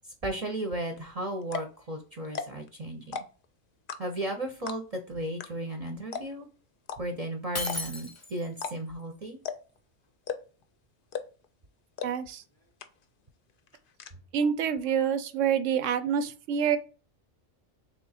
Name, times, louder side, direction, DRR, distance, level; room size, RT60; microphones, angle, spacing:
voice 1, 0.2-3.2 4.0-6.5 7.0-9.4, right 1 dB, 40° right, 0.6 m, -35 dB
sound 1, 1.0-1.1 1.4-1.8 2.2-2.7 3.0-3.5 3.9-4.3 4.7-5.0 5.4-5.5 5.7-5.8 6.1-6.5 6.9-7.0 7.6-8.0 8.5-8.7 9.0-9.1 9.4-9.8 10.2-10.6 11.1-11.5 12.0-12.1 12.4-12.5 12.8-13.2 13.5-14.1, left 6 dB, 60° left, 0.6 m, -35 dB
Shatter, 7.5-8.6, left 2 dB, 20° left, 0.4 m, -35 dB
voice 2, 12.0-12.4 14.3-16.8, right 8 dB, 90° right, 0.9 m, -27 dB
3.5 x 3.2 x 4.0 m
omnidirectional pair, 1.2 m